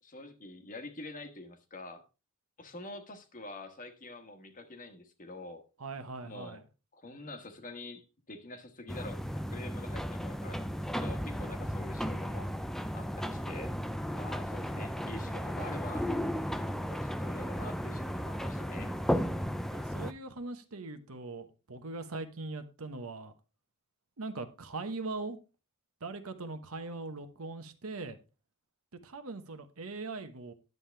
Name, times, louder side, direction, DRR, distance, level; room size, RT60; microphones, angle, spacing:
voice 1, 0.0-2.0 2.6-5.6 6.2-6.6 6.9-12.5 12.9-13.7 14.1-16.1 16.8-19.0, left 2 dB, 40° left, 1.3 m, -46 dB
voice 2, 5.8-6.6 19.7-23.3 24.2-25.4 26.0-28.2 29.0-30.5, right 3 dB, 70° right, 1.1 m, -40 dB
sound 1, 8.9-20.1, equal, ahead, 0.4 m, -35 dB
10.5 x 7.6 x 3.4 m
head